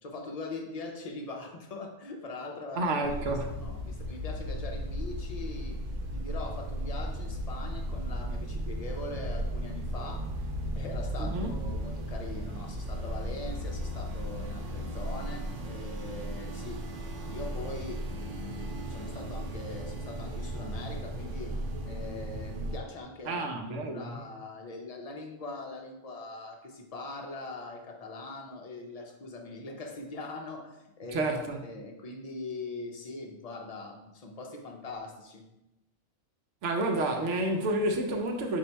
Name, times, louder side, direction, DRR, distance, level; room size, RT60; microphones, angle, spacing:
voice 1, 0.0-5.8 6.1-10.3 10.8-21.5 21.8-23.5 23.8-35.4, left 3 dB, 45° left, 0.5 m, -42 dB
voice 2, 2.8-3.5 11.2-11.5 23.3-24.2 31.1-31.6 36.6-38.6, right 2 dB, 80° right, 1.0 m, -30 dB
sound 1, 3.0-22.8, equal, 60° right, 0.6 m, -36 dB
4.0 x 2.7 x 4.4 m
omnidirectional pair, 1.2 m